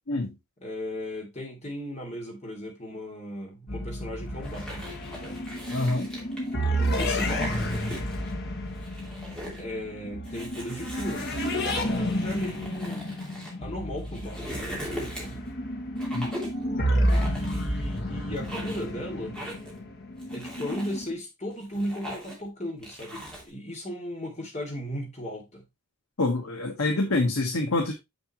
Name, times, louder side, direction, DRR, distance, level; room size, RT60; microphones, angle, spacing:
voice 1, 0.6-4.9 5.2-5.4 6.8-7.8 9.6-13.1 13.6-15.5 17.2-19.4 20.3-25.6, equal, 30° left, 2.7 m, -36 dB
sound 1, 3.7-21.1, equal, 50° left, 1.6 m, -31 dB
sound 2, 4.4-6.5 7.0-8.3 8.7-9.6 10.2-13.5 14.0-15.5 16.0-16.6 17.1-18.0 18.3-18.9 19.3-19.8 20.2-21.0 21.5-22.5 22.8-23.5, equal, 5° left, 2.6 m, -40 dB
voice 2, 5.7-6.1 16.1-16.3 26.2-27.9, left 2 dB, 85° left, 1.4 m, -26 dB
7.0 x 6.8 x 3.0 m
head